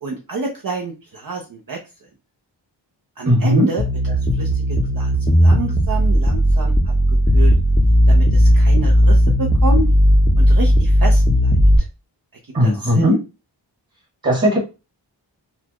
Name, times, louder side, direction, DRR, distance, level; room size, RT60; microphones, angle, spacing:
voice 1, 0.0-1.8 3.2-4.6 4.9-6.7 7.3-7.5 8.1-9.9 10.4-11.9 12.6-13.2, right 2 dB, 50° right, 1 dB, 0.7 m, -28 dB
voice 2, 3.3-3.6 12.5-13.2 14.2-14.6, equal, 25° right, -3 dB, 1.2 m, -16 dB
sound 1, 3.8-11.8, equal, 25° left, 0.6 m, -15 dB
4.1 x 2.3 x 2.9 m, 0.29 s
wide cardioid pair, 95°, 43 cm